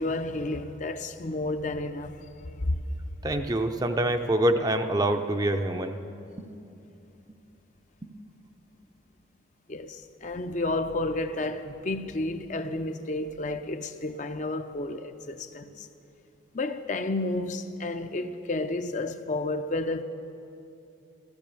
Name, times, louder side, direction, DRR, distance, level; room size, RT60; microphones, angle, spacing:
voice 1, 0.0-2.2 2.6-2.8 9.7-15.9 16.5-20.0, left 2 dB, 40° left, 0.6 m, -31 dB
voice 2, 3.2-6.0 6.4-6.5 8.0-8.1, right 1 dB, 20° right, 0.6 m, -26 dB
15.0 x 13.5 x 6.9 m
head